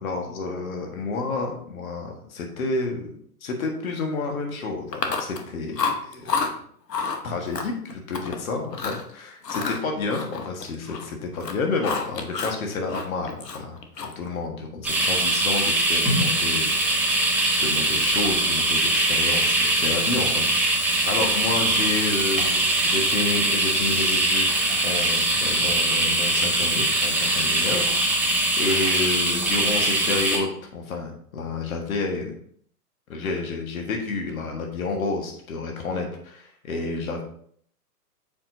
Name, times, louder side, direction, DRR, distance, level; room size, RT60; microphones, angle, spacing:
voice 1, 0.0-6.5 7.2-17.3 17.6-32.3 33.1-37.2, left 3 dB, 60° left, 2 dB, 1.7 m, -30 dB
Chewing mastication, 4.9-5.5 5.8-6.5 6.9-7.2 7.5-8.4 8.7-9.0 9.4-11.1 11.3-12.6 12.9-14.3, left 5 dB, 90° left, 1.1 m, -29 dB
sound 1, 14.8-30.4, right 2 dB, 5° right, 1.3 m, -22 dB
7.1 x 4.9 x 2.7 m, 0.62 s
hypercardioid pair, 135°, 47 cm